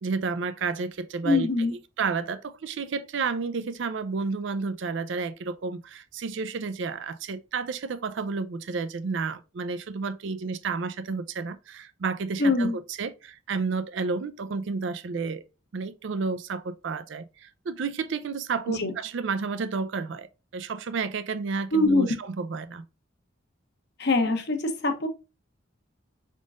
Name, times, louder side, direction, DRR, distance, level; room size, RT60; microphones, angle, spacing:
voice 1, 0.0-1.5 2.0-15.4 15.7-22.8, right 4 dB, 60° right, 0.4 m, -31 dB
voice 2, 1.2-1.7 12.4-12.8 18.7-18.9 21.7-22.1 24.0-25.1, left 2 dB, 55° left, 0.9 m, -23 dB
5.1 x 3.6 x 2.4 m
head